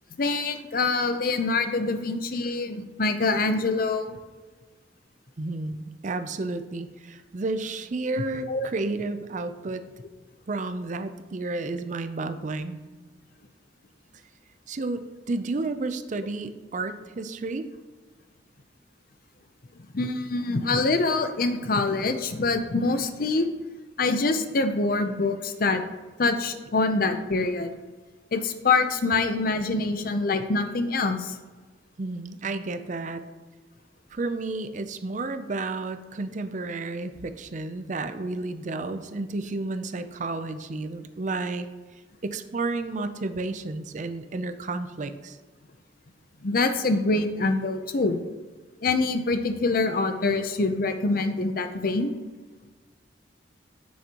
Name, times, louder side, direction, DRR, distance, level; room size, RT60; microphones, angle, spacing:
voice 1, 0.2-4.2 8.5-8.7 19.9-23.5 24.0-25.8 26.2-27.7 28.3-31.4 46.4-48.2 48.8-52.1, left 3 dB, 50° left, 8 dB, 0.6 m, -25 dB
voice 2, 5.4-9.8 10.5-12.8 14.7-15.0 15.3-17.7 32.0-33.2 34.1-41.7 42.2-45.4, right 3 dB, 40° right, 10 dB, 0.5 m, -31 dB
10.5 x 6.4 x 3.0 m, 1.3 s
head